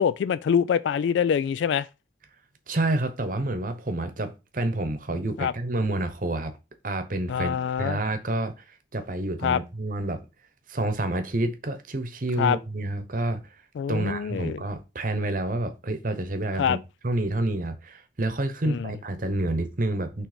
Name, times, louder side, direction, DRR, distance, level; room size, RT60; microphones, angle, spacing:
voice 1, 0.0-1.9 5.4-5.5 7.3-8.0 9.4-9.6 12.4-12.6 13.8-14.6 16.6-16.8 18.7-18.9, left 7 dB, 75° left, 0.3 m, -25 dB
voice 2, 2.7-6.5 6.8-8.5 8.9-10.2 10.7-13.4 13.9-16.8 17.0-20.3, right 2 dB, 45° right, 1.0 m, -28 dB
6.2 x 3.3 x 5.0 m
head